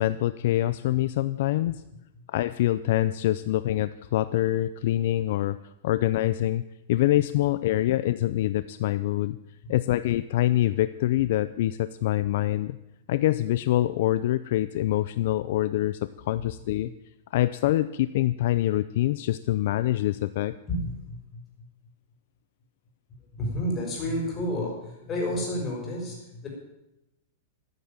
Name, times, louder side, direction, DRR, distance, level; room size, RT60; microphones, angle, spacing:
voice 1, 0.0-1.7 2.3-5.6 5.8-6.6 6.9-9.4 9.7-12.8 13.1-16.9 17.3-20.6, left 14 dB, 55° left, 14 dB, 0.5 m, -25 dB
voice 2, 20.7-21.4 23.3-26.5, left 1 dB, 20° left, -1 dB, 5.6 m, -31 dB
14.0 x 9.3 x 8.9 m, 0.91 s
supercardioid pair, 160°, 0 cm